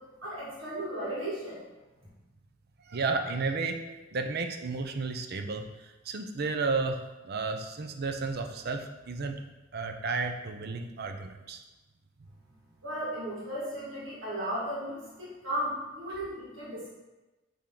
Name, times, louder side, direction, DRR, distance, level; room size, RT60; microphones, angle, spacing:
voice 1, 0.2-1.6 12.8-16.9, right 1 dB, 75° right, -7 dB, 2.2 m, -35 dB
voice 2, 2.8-9.4 9.7-11.6, right 4 dB, 55° right, 6 dB, 0.6 m, -33 dB
8.6 x 3.6 x 3.8 m, 1.1 s
head